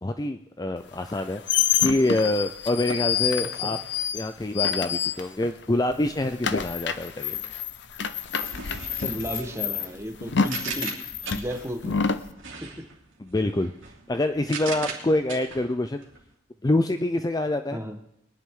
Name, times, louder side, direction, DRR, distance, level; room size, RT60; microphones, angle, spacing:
voice 1, 0.0-3.8 4.1-7.4 13.2-13.7 14.1-16.0 16.6-17.8, left 1 dB, 20° left, 8 dB, 0.4 m, -26 dB
sound 1, 1.0-5.6 5.9-12.3, left 7 dB, 60° left, 0.7 m, -28 dB
sound 2, 8.4-11.8 12.4-16.3, right 5 dB, 80° right, 2.7 m, -39 dB
voice 2, 9.0-11.0 11.3-12.0 12.6-12.7 17.7-18.0, equal, 15° right, 4 dB, 1.2 m, -34 dB
22.0 x 10.5 x 3.7 m, 0.75 s
head